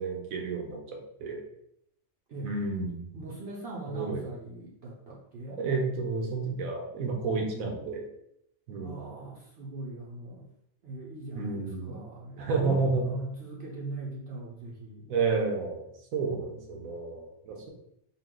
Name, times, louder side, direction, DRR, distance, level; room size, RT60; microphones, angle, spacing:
voice 1, 0.0-1.4 2.4-3.1 3.9-4.2 5.6-8.1 8.7-9.0 11.3-12.0 12.4-13.0 15.1-15.8 16.1-17.7, right 4 dB, 80° right, 1 dB, 1.3 m, -31 dB
voice 2, 3.1-5.6 8.8-10.5 10.8-15.1 16.2-17.0, right 2 dB, 55° right, -4 dB, 0.9 m, -41 dB
3.9 x 2.4 x 3.7 m, 0.74 s
omnidirectional pair, 1.4 m